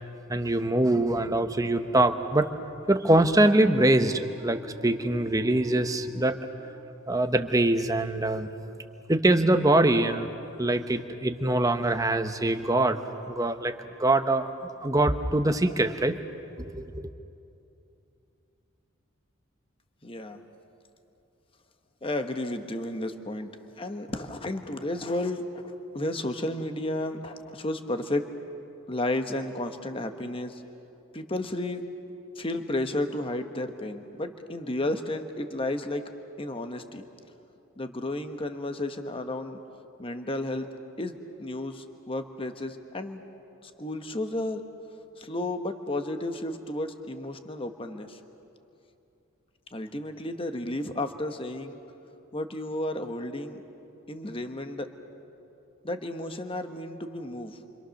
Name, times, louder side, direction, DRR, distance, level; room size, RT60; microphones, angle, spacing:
voice 1, 0.3-2.5 2.9-6.7 7.1-8.5 9.1-10.3 10.6-13.0 13.3-13.7 14.0-14.5 14.8-16.2 16.6-17.0, right 1 dB, 15° right, 8 dB, 0.9 m, -23 dB
voice 2, 20.0-20.4 22.0-23.5 23.8-28.2 28.9-30.6 31.1-31.8 32.3-36.0 36.4-37.0 37.8-39.6 40.0-40.7 41.0-43.2 43.6-44.6 45.2-48.2 49.7-51.8 52.3-53.6 54.1-54.9 55.8-57.6, left 1 dB, 25° left, 7 dB, 1.1 m, -32 dB
28.5 x 25.5 x 6.5 m, 2.8 s
head